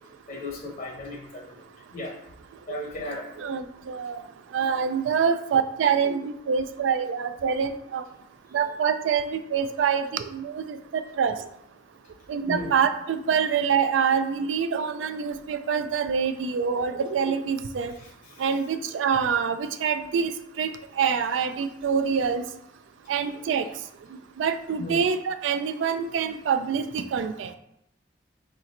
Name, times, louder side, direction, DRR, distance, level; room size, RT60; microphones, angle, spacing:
voice 1, 0.3-1.5 1.9-2.2 2.7-3.3 12.5-12.7 24.8-25.0, left 2 dB, 50° left, 0 dB, 0.8 m, -35 dB
voice 2, 3.4-4.2 4.5-8.0 8.5-11.3 12.3-17.9 18.4-20.3 20.6-20.7 21.0-22.4 23.1-23.6 24.4-27.5, right 6 dB, 80° right, 10 dB, 0.3 m, -25 dB
4.3 x 4.1 x 2.5 m, 0.77 s
head